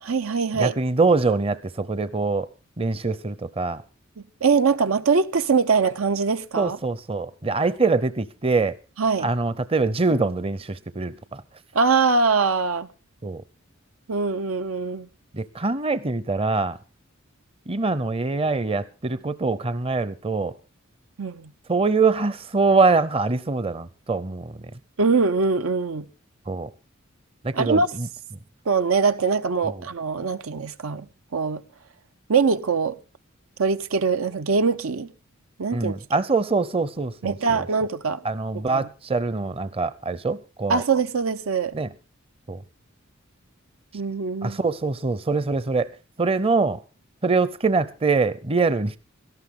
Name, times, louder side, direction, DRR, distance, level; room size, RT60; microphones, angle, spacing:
voice 1, 0.0-0.7 4.4-6.8 9.0-9.3 11.7-12.9 14.1-15.1 21.2-21.5 25.0-26.1 27.5-27.9 28.7-31.6 32.3-33.0 33.6-35.1 35.6-36.0 37.2-38.2 38.5-38.9 40.7-41.7 43.9-44.6, right 4 dB, 90° right, 0.8 m, -22 dB
voice 2, 0.6-2.5 2.8-3.8 6.6-8.8 9.2-11.4 13.2-13.4 15.3-16.8 17.7-20.5 21.7-24.5 26.5-26.7 27.4-28.1 29.6-29.8 35.7-37.6 38.2-40.8 41.7-41.9 42.5-42.6 44.4-45.9 46.2-46.8 47.2-49.0, right 3 dB, 30° right, 0.6 m, -24 dB
18.0 x 13.5 x 3.7 m
head